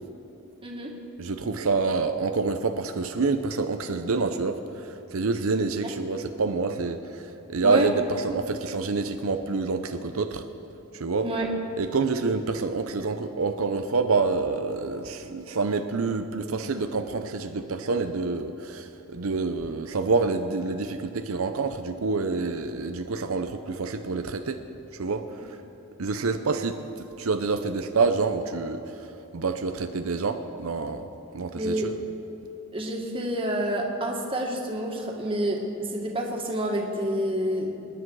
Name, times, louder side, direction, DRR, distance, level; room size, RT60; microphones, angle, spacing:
voice 1, 0.6-0.9 5.8-5.9 7.6-7.9 11.2-11.5 31.6-31.9 32.7-35.6 35.9-37.7, right 1 dB, 25° right, 0 dB, 2.0 m, -28 dB
voice 2, 1.2-10.4 10.9-11.3 11.8-24.6 24.9-25.6 26.0-31.1 31.3-31.9, right 4 dB, 85° right, 7 dB, 0.7 m, -27 dB
26.0 x 10.0 x 4.8 m, 2.9 s
head